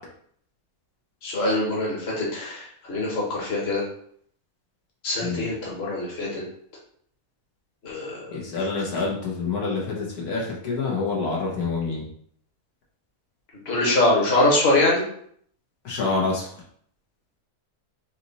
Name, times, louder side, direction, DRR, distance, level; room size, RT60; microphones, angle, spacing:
voice 1, 1.2-3.8 5.0-6.4 7.8-8.4 13.7-15.0, left 2 dB, 45° left, -3 dB, 1.4 m, -23 dB
voice 2, 5.2-5.5 8.3-12.0 15.8-16.5, left 4 dB, 85° left, -3 dB, 1.6 m, -27 dB
4.2 x 3.0 x 4.0 m, 0.64 s
omnidirectional pair, 1.6 m